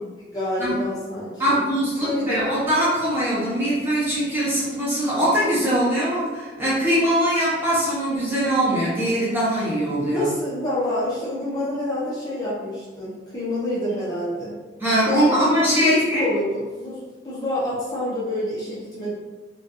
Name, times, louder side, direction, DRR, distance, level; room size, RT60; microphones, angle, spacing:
voice 1, 0.3-1.6 2.0-2.5 10.1-14.6 15.1-17.0 17.2-19.1, left 1 dB, 20° left, -9 dB, 0.5 m, -27 dB
voice 2, 1.4-10.2 14.8-16.2, equal, 10° right, -9 dB, 0.7 m, -22 dB
2.6 x 2.2 x 2.5 m, 1.3 s
head